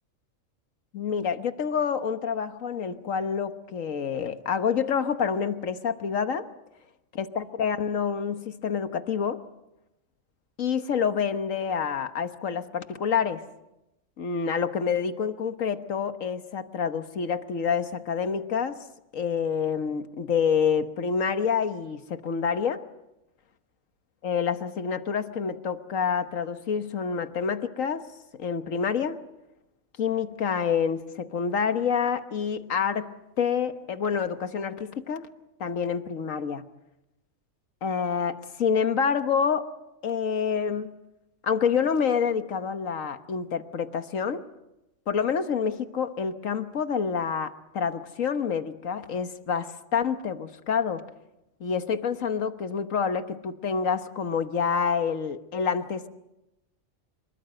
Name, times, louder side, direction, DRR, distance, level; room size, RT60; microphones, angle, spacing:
voice 1, 0.9-6.5 7.2-9.4 10.6-13.4 14.2-18.8 19.1-22.8 24.2-28.0 28.3-29.2 30.0-33.1 33.4-35.3 35.6-36.6 37.8-39.7 40.0-40.9 41.4-44.4 45.1-51.0 51.6-56.1, left 6 dB, 70° left, 10 dB, 1.6 m, -27 dB
25.5 x 23.0 x 7.7 m, 0.93 s
omnidirectional pair, 1.4 m